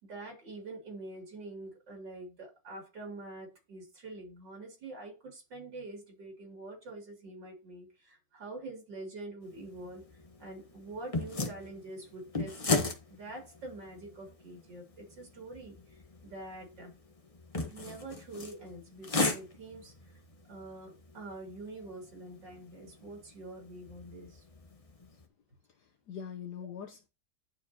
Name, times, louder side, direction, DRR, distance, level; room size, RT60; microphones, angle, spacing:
voice 1, 0.0-10.0 10.4-16.9 17.7-20.2 20.5-24.4 26.6-26.7, right 2 dB, 75° right, 3.2 m, -46 dB
sound 1, 9.4-25.2, left 3 dB, 25° left, 0.9 m, -38 dB
voice 2, 25.7-27.1, left 8 dB, 70° left, 1.3 m, -43 dB
11.0 x 4.7 x 2.8 m
omnidirectional pair, 1.9 m